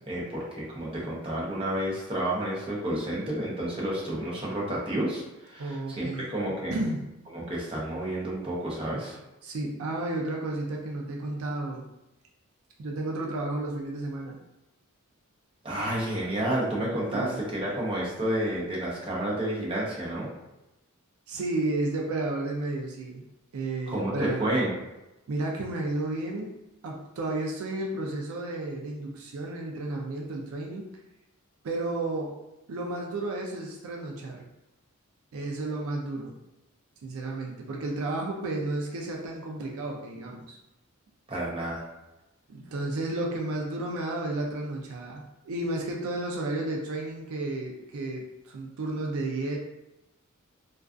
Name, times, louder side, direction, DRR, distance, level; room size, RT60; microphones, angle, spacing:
voice 1, 0.0-6.8 7.3-9.2 15.6-20.3 23.9-24.7 41.3-41.8, right 1 dB, 25° right, -5 dB, 0.6 m, -30 dB
voice 2, 5.6-6.3 6.7-7.1 9.4-11.9 12.8-14.4 17.1-17.4 21.3-23.2 23.5-24.4 25.3-26.5 26.8-30.9 31.6-32.4 32.7-34.4 35.3-36.3 37.0-40.6 42.5-49.6, right 2 dB, 70° right, 0 dB, 0.4 m, -32 dB
2.3 x 2.3 x 2.4 m, 0.97 s
head